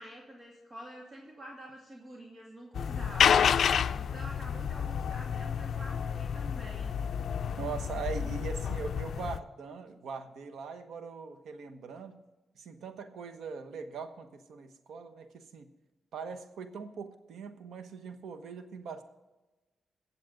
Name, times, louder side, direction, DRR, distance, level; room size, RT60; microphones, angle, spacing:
voice 1, 0.0-7.0, equal, 35° right, -2 dB, 2.3 m, -48 dB
sound 1, 2.7-9.4, left 7 dB, 65° left, 0.4 m, -29 dB
voice 2, 7.6-12.2 12.5-15.7 16.1-19.0, right 5 dB, 85° right, 8 dB, 1.2 m, -41 dB
22.0 x 7.8 x 3.9 m, 1.1 s
cardioid pair, 100°, 0 cm